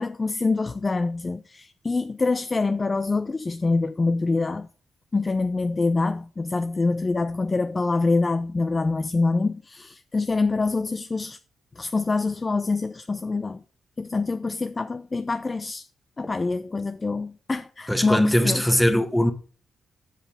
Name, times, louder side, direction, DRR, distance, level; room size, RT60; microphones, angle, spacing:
voice 1, 0.0-4.7 5.1-11.4 11.8-13.6 14.0-15.9 16.2-18.7, left 3 dB, 25° left, 0.3 m, -25 dB
voice 2, 17.9-19.3, equal, 5° left, 1.0 m, -20 dB
7.5 x 5.4 x 4.8 m
cardioid pair, 120°, 0 cm